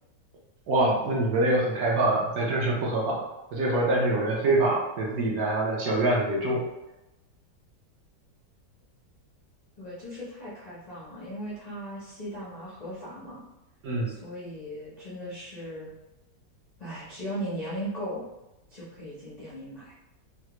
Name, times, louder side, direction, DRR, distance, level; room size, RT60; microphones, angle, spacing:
voice 1, 0.7-6.6 13.8-14.1, right 2 dB, 65° right, -3 dB, 1.1 m, -25 dB
voice 2, 9.8-13.4 14.1-15.9 16.8-18.2 18.7-19.9, equal, 60° left, -9 dB, 0.4 m, -38 dB
3.2 x 2.3 x 2.9 m, 0.97 s
omnidirectional pair, 1.9 m